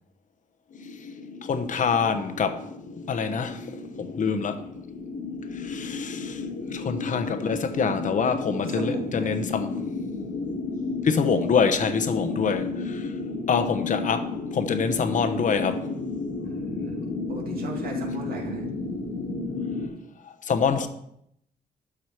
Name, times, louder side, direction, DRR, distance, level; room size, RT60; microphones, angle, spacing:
sound 1, 0.7-19.9, left 3 dB, 70° left, 1.8 m, -33 dB
voice 1, 1.4-2.6 3.1-4.6 5.5-6.4 6.7-9.7 11.0-13.1 13.5-15.8 20.4-20.9, left 5 dB, 55° left, 0.9 m, -25 dB
voice 2, 8.6-9.4 16.4-18.7, right 2 dB, 70° right, 2.3 m, -38 dB
12.5 x 5.0 x 4.6 m
cardioid pair, 125°, 16 cm